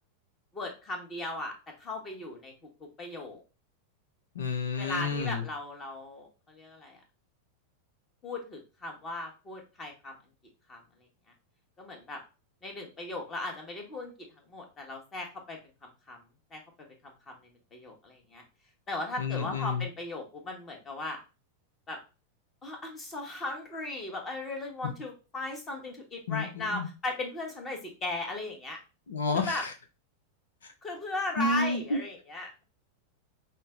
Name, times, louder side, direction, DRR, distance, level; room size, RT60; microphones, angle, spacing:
voice 1, 0.5-1.5 1.8-2.5 3.0-3.4 4.8-7.0 8.2-10.1 10.7-10.8 11.8-12.2 12.6-14.1 14.5-16.2 16.5-16.6 17.0-17.3 17.7-18.4 18.9-21.2 21.9-22.0 22.6-28.8 29.3-29.6 30.8-32.6, left 2 dB, 25° left, 2 dB, 1.3 m, -37 dB
voice 2, 4.3-5.4 19.2-19.9 26.3-26.9 29.1-29.7 31.4-32.0, left 3 dB, 65° left, 7 dB, 0.7 m, -30 dB
5.4 x 2.2 x 3.5 m, 0.31 s
figure-of-eight pair, 90°, 0 cm